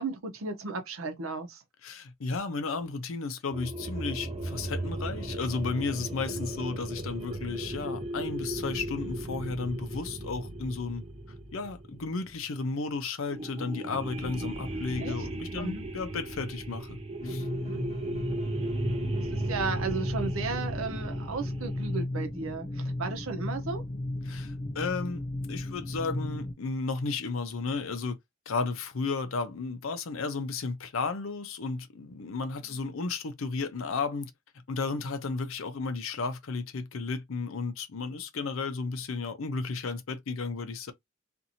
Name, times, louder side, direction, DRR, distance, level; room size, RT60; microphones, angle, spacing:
voice 1, 0.0-1.6 6.3-6.4 15.0-15.3 15.6-15.9 17.5-17.8 19.2-23.8 32.6-32.8, right 4 dB, 85° right, 0.8 m, -35 dB
voice 2, 1.8-11.0 11.5-17.5 24.3-28.2 28.5-34.3 34.7-40.9, left 4 dB, 80° left, 0.6 m, -33 dB
sound 1, 3.5-12.6 13.3-22.0, right 1 dB, 30° right, 0.5 m, -36 dB
sound 2, 17.2-26.5, left 1 dB, 30° left, 0.4 m, -35 dB
2.6 x 2.5 x 2.8 m
head